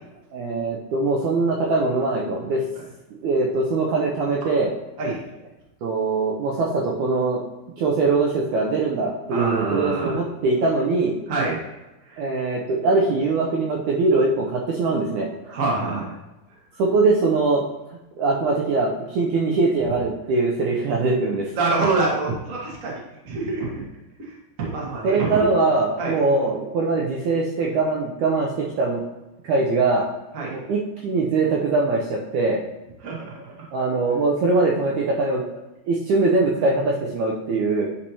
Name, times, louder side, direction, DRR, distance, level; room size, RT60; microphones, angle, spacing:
voice 1, 0.3-2.6 3.2-4.7 5.8-7.4 7.8-11.2 12.2-15.6 16.8-17.6 18.2-21.5 25.0-29.0 29.4-30.1 30.5-32.6 33.7-35.6 35.9-37.9, right 3 dB, 80° right, -2 dB, 1.8 m, -22 dB
voice 2, 9.3-10.2 11.3-11.6 12.0-12.2 15.5-16.0 21.5-23.8 24.2-25.4 26.0-26.2 30.3-30.6 33.0-33.3, right 3 dB, 45° right, -4 dB, 1.0 m, -26 dB
9.8 x 4.2 x 2.9 m, 1.0 s
omnidirectional pair, 4.1 m